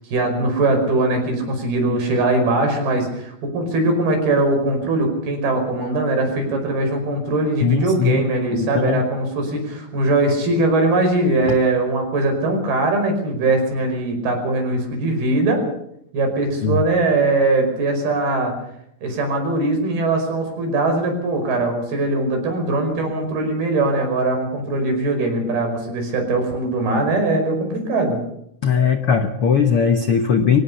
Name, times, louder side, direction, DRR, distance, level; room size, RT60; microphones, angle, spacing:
voice 1, 0.1-15.6 16.1-18.5 19.0-28.2, right 2 dB, 80° right, 5 dB, 7.1 m, -21 dB
voice 2, 7.6-8.2 8.5-9.0 16.6-16.8 28.6-30.6, left 6 dB, 70° left, 7 dB, 1.3 m, -19 dB
24.5 x 17.5 x 7.1 m, 0.75 s
omnidirectional pair, 4.3 m